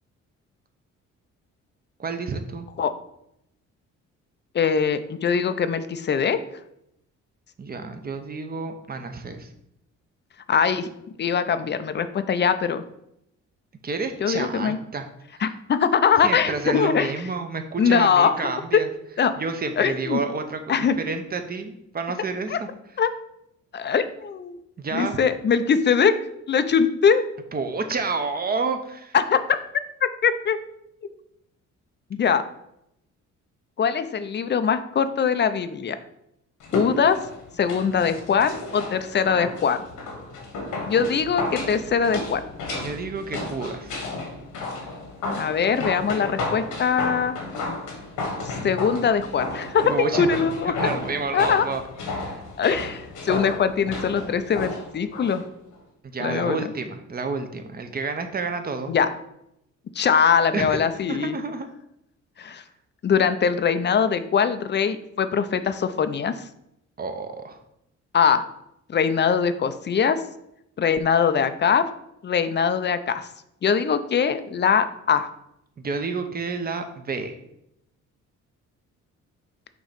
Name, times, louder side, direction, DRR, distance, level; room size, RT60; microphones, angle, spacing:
voice 1, 2.0-2.7 7.6-9.5 13.8-15.1 15.3-15.4 16.2-18.9 19.4-22.7 24.8-25.2 27.5-29.1 42.8-43.9 49.9-50.4 50.8-51.8 52.2-52.4 56.0-58.9 60.5-61.7 67.0-67.6 75.8-77.4, right 4 dB, 30° right, 7 dB, 0.8 m, -30 dB
voice 2, 4.5-6.4 10.5-10.9 11.2-12.8 14.2-14.8 15.4-17.1 17.8-18.8 19.2-19.3 19.8-20.2 20.7-21.0 22.5-22.6 23.0-23.1 23.7-24.6 24.9-26.2 26.5-27.2 29.1-29.4 30.2-30.6 32.1-32.4 33.8-36.0 36.7-37.2 37.6-39.8 40.9-42.4 45.4-47.3 48.4-50.8 51.3-51.7 52.6-55.4 56.2-56.6 58.9-59.1 59.9-61.4 62.4-62.6 63.0-66.4 68.1-68.4 68.9-70.2 70.8-71.8 72.2-73.3 73.6-75.3, left 6 dB, 35° left, 11 dB, 0.5 m, -22 dB
sound 1, 36.6-55.4 55.7-55.8, left 2 dB, 90° left, 1.5 m, -33 dB
6.4 x 3.1 x 5.1 m, 0.80 s
cardioid pair, 90°, 30 cm